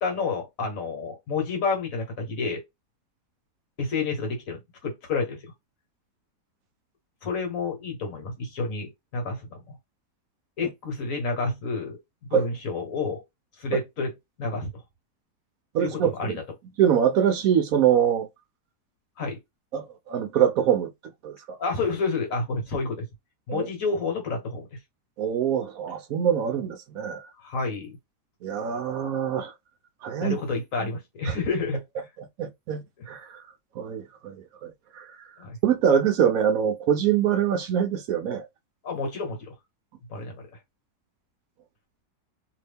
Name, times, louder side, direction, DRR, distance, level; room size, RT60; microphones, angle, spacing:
voice 1, 0.0-2.6 3.8-5.5 7.2-9.8 10.6-12.0 12.3-13.2 13.6-14.1 14.4-14.8 15.8-16.4 19.2-19.4 21.6-23.1 23.5-24.8 27.4-28.0 30.2-31.8 35.4-35.6 38.8-39.5 40.1-40.4, left 4 dB, 55° left, 1.5 m, -29 dB
voice 2, 15.7-16.3 16.8-18.3 19.7-20.9 21.2-21.6 23.5-23.7 25.2-27.3 28.4-29.5 30.0-30.4 31.2-31.4 32.2-33.4 33.7-35.3 35.6-38.5, right 9 dB, 65° right, 0.9 m, -24 dB
2.8 x 2.7 x 3.4 m
omnidirectional pair, 1.8 m